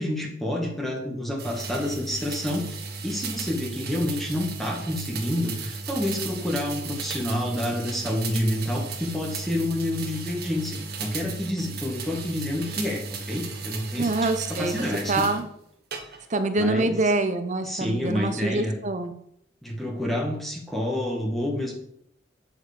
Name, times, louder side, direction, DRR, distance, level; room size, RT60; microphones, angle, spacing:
voice 1, 0.0-14.1 14.5-15.3 16.6-17.0 17.6-18.7 19.6-21.7, left 1 dB, ahead, -1 dB, 1.5 m, -28 dB
sound 1, 1.4-15.4 15.9-16.5, right 4 dB, 55° right, 1.2 m, -35 dB
voice 2, 14.0-14.7 15.1-15.5 16.3-19.1, right 2 dB, 40° right, 9 dB, 0.8 m, -25 dB
8.6 x 4.7 x 5.0 m, 0.71 s
head